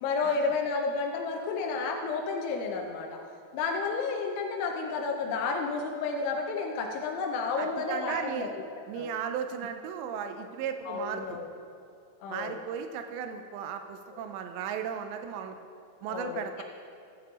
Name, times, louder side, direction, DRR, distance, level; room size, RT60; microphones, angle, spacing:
voice 1, 0.0-3.2 3.5-8.6 9.0-9.1 10.9-11.5 12.2-12.6 14.1-14.3 16.1-16.6, left 4 dB, 85° left, 2 dB, 3.1 m, -31 dB
voice 2, 7.6-8.5 8.9-11.4 12.3-15.6 16.0-16.6, right 8 dB, 80° right, 7 dB, 2.7 m, -36 dB
14.0 x 8.2 x 3.7 m, 2.5 s
omnidirectional pair, 5.3 m